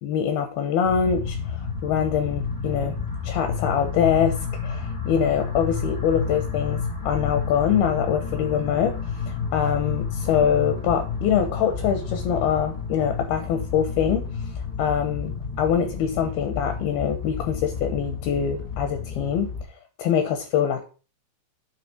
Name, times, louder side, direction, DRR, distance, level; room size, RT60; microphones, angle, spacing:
voice 1, 0.0-3.0 3.2-4.4 4.6-9.0 9.3-14.3 14.8-15.3 15.6-19.5 20.0-20.8, left 8 dB, 75° left, 6 dB, 2.4 m, -24 dB
sound 1, 0.8-19.6, left 5 dB, 10° left, 0.9 m, -30 dB
9.0 x 4.0 x 5.9 m, 0.35 s
omnidirectional pair, 5.2 m